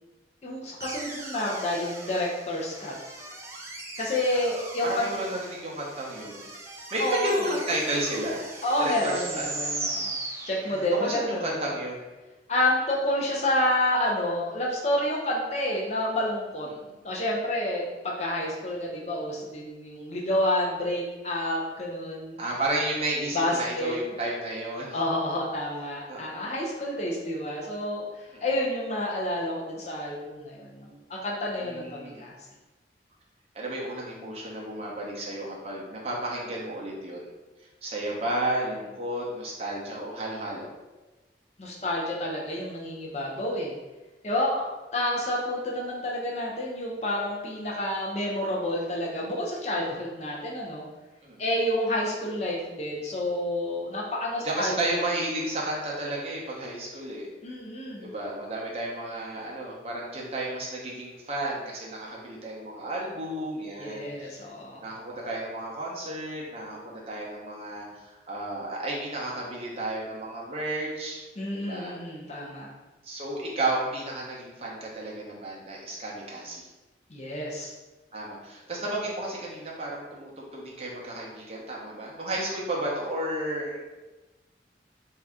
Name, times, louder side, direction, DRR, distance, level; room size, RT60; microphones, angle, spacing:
voice 1, 0.4-2.9 4.0-5.1 7.0-7.4 8.6-10.2 10.4-11.6 12.5-16.7 17.0-22.4 23.3-24.0 24.9-28.0 28.4-32.4 41.6-43.8 44.2-44.7 44.9-50.8 51.4-54.8 57.4-58.1 63.8-64.8 71.4-72.7 77.1-77.7, left 1 dB, 40° left, -3 dB, 0.5 m, -29 dB
sound 1, 0.8-11.1, right 2 dB, 15° right, 0.4 m, -38 dB
voice 2, 4.8-6.4 6.9-8.4 8.8-9.4 10.7-12.0 16.6-17.0 22.4-25.0 26.1-26.5 28.3-28.5 31.6-32.2 33.5-37.3 37.8-40.7 43.3-43.4 51.2-51.4 54.4-57.3 58.0-64.5 64.8-71.2 71.5-71.9 73.0-76.7 78.1-83.8, right 1 dB, 35° right, -4 dB, 0.8 m, -32 dB
3.6 x 2.7 x 3.5 m, 1.2 s
head